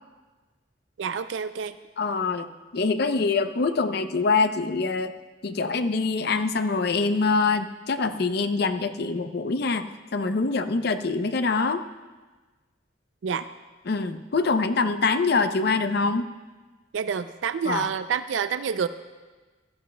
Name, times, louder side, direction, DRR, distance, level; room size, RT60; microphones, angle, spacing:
voice 1, 1.0-1.7 13.2-13.4 16.9-18.9, right 7 dB, 80° right, 12 dB, 0.4 m, -28 dB
voice 2, 2.0-5.1 5.4-11.8 13.9-16.3 17.7-17.9, left 4 dB, 60° left, 9 dB, 0.6 m, -24 dB
16.0 x 13.0 x 2.2 m, 1.3 s
head